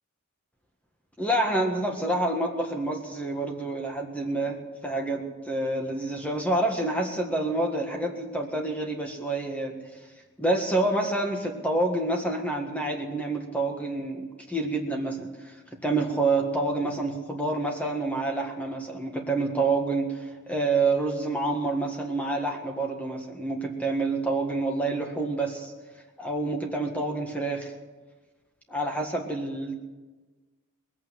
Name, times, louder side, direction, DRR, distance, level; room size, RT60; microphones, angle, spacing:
voice 1, 1.2-4.6 4.8-9.8 10.4-15.5 15.8-20.2 20.5-25.7 26.2-27.7 28.7-29.7, right 2 dB, 5° left, 2 dB, 1.7 m, -28 dB
20.5 x 8.7 x 7.7 m, 1.3 s
head